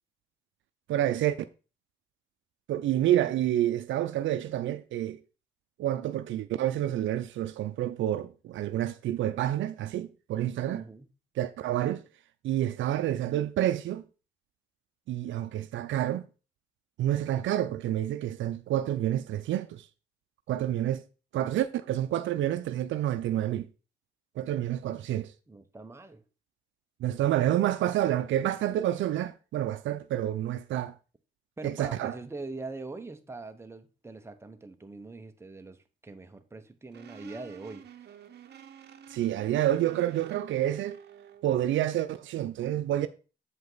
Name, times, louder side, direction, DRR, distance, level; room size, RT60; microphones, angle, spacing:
voice 1, 0.9-1.4 2.7-5.2 5.8-10.8 11.4-12.0 12.4-14.0 15.1-16.3 17.0-19.9 20.5-21.0 21.3-23.7 24.4-25.3 27.0-30.9 31.6-32.1 39.1-41.0 41.4-43.1, right 12 dB, 75° right, 0.5 m, -28 dB
voice 2, 10.7-11.1 24.8-25.0 25.5-26.2 31.6-38.1, right 3 dB, 15° right, 0.9 m, -43 dB
sound 1, 36.9-41.5, right 9 dB, 55° right, 0.9 m, -50 dB
8.0 x 5.3 x 3.9 m
cardioid pair, 90°, 20 cm